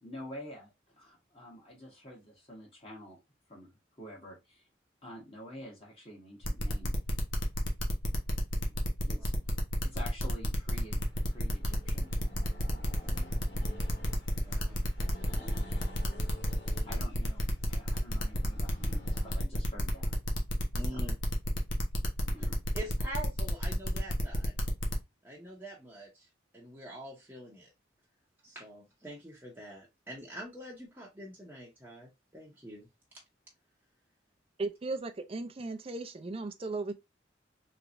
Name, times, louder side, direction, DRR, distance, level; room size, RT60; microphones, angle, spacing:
voice 1, 0.0-3.2 3.5-3.7 4.0-4.7 5.0-6.9 7.6-7.7 9.0-9.5 9.8-11.0 11.3-12.1 15.4-15.7 16.8-20.1 20.9-21.1 22.3-22.6, equal, 30° left, 1.1 m, -48 dB
sound 1, 6.4-24.9, left 1 dB, 85° left, 0.9 m, -34 dB
Accelerating revving vroom, 10.7-19.4, equal, 60° left, 1.5 m, -49 dB
voice 2, 14.4-14.9 20.7-21.1 22.4-22.5 22.7-24.5 25.2-26.3 26.5-27.7 28.4-32.9, right 1 dB, 10° right, 0.8 m, -45 dB
voice 3, 34.6-36.9, right 3 dB, 30° right, 0.4 m, -36 dB
3.3 x 3.0 x 2.5 m
head